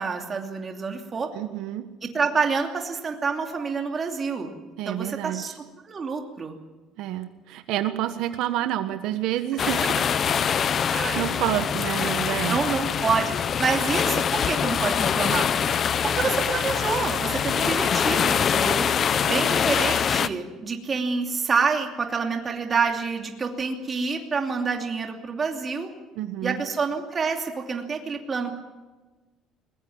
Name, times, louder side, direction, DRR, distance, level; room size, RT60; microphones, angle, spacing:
voice 1, 0.0-1.3 2.0-4.6 4.9-5.5 5.8-6.6 10.9-11.2 12.5-15.5 16.0-18.9 19.2-25.9 26.4-28.6, right 5 dB, 25° right, 3 dB, 2.7 m, -27 dB
voice 2, 1.3-1.8 4.8-5.4 7.0-9.9 11.1-12.6 26.2-26.6, right 12 dB, 70° right, 8 dB, 1.4 m, -28 dB
sound 1, 9.6-20.3, left 7 dB, 30° left, 0.6 m, -24 dB
22.0 x 21.0 x 7.3 m, 1.2 s
cardioid pair, 170°, 0 cm